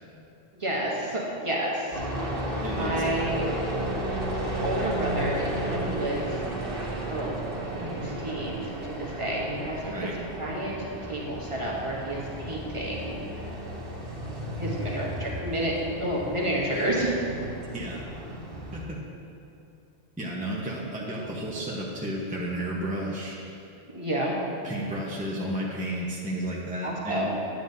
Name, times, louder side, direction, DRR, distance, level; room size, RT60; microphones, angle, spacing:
voice 1, 0.5-2.0 2.7-3.4 4.6-6.4 7.1-7.5 7.8-10.1 10.4-13.2 14.6-17.2 23.9-24.3 26.8-27.4, right 1 dB, 30° right, -4 dB, 1.1 m, -30 dB
sound 1, 1.9-18.8, right 1 dB, 55° right, 1.5 m, -33 dB
voice 2, 2.6-2.9 9.9-10.1 17.7-18.1 18.7-19.0 20.2-23.6 24.6-27.3, right 1 dB, 10° right, -5 dB, 0.7 m, -32 dB
9.1 x 8.6 x 2.7 m, 2.6 s
omnidirectional pair, 1.1 m